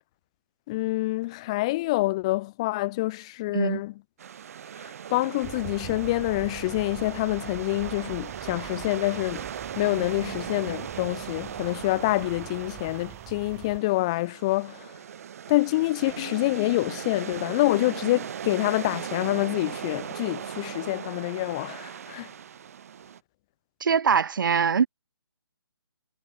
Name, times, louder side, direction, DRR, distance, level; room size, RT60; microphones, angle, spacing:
voice 1, 0.7-4.0 4.8-9.5 9.8-14.9 15.5-22.3, left 19 dB, 15° left, 0.7 m, -27 dB
sound 1, 4.2-23.2, right 8 dB, 35° right, 6.9 m, -38 dB
sound 2, 5.4-13.8, right 19 dB, 10° right, 4.0 m, -44 dB
voice 2, 23.8-24.9, right 6 dB, 50° right, 1.5 m, -22 dB
hypercardioid pair, 175°, 13 cm